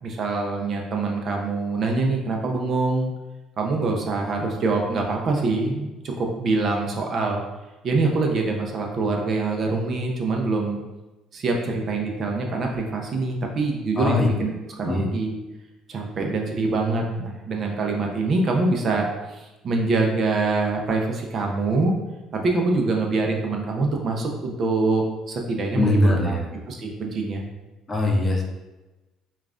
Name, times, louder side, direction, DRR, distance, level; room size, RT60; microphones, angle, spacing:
voice 1, 0.0-3.1 3.6-7.4 7.8-10.8 11.3-15.3 15.9-21.9 22.3-26.3 26.7-27.4, right 3 dB, 45° right, 1 dB, 0.6 m, -24 dB
voice 2, 14.0-14.3 14.9-15.1 25.8-26.5 27.9-28.4, left 1 dB, 25° left, 0 dB, 0.6 m, -21 dB
5.2 x 2.4 x 2.5 m, 1.1 s
cardioid pair, 100°, 0 cm